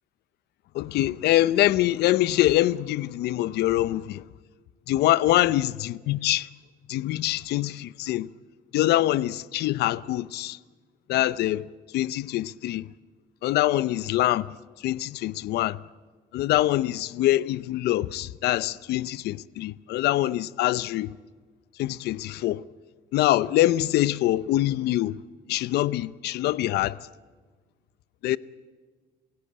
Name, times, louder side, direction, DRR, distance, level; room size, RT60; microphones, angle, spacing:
voice 1, 0.7-4.2 4.9-6.5 6.9-8.3 8.7-10.6 11.1-11.7 11.9-12.9 13.4-14.5 14.8-15.8 16.3-21.1 21.8-22.6 23.1-25.2 25.5-27.0 28.2-28.4, left 15 dB, 75° left, 0.7 m, -24 dB
27.5 x 16.5 x 8.7 m
cardioid pair, 110°, 17 cm